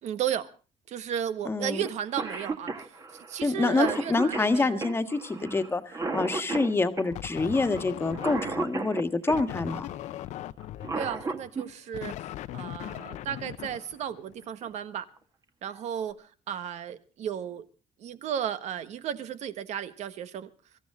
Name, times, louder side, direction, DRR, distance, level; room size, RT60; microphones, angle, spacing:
voice 1, 0.0-0.5 0.9-4.8 5.4-5.5 10.9-12.1 12.5-15.1 15.6-17.6 18.0-20.5, right 9 dB, 65° right, 1.5 m, -34 dB
voice 2, 1.4-1.8 3.4-9.9, left 3 dB, 20° left, 1.6 m, -27 dB
Cough, 1.8-1.9 2.2-9.5 10.6-11.7 13.3-13.4 14.4-14.7 15.2-15.3 15.6-16.1, right 3 dB, 25° right, 1.7 m, -34 dB
sound 1, 7.1-8.7 9.3-14.5, left 13 dB, 75° left, 0.8 m, -39 dB
25.0 x 14.5 x 3.6 m
cardioid pair, 135°, 12 cm